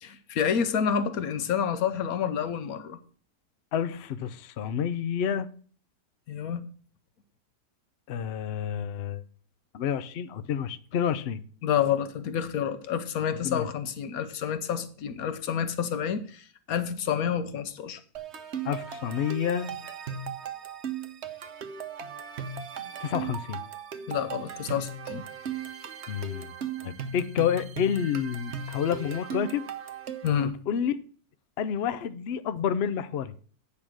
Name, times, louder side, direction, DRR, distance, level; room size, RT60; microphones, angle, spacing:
voice 1, 0.0-3.0 6.3-6.7 11.6-18.0 24.1-25.2 30.2-30.5, left 8 dB, 65° left, 1.2 m, -29 dB
voice 2, 3.7-5.5 8.1-9.2 9.7-11.4 13.4-13.7 18.6-19.7 23.0-23.6 26.1-26.5 26.8-29.6 30.7-30.9 31.6-33.3, left 8 dB, 80° left, 0.5 m, -29 dB
sound 1, 18.1-30.4, right 6 dB, 50° right, 0.9 m, -37 dB
8.6 x 5.4 x 6.2 m
omnidirectional pair, 1.8 m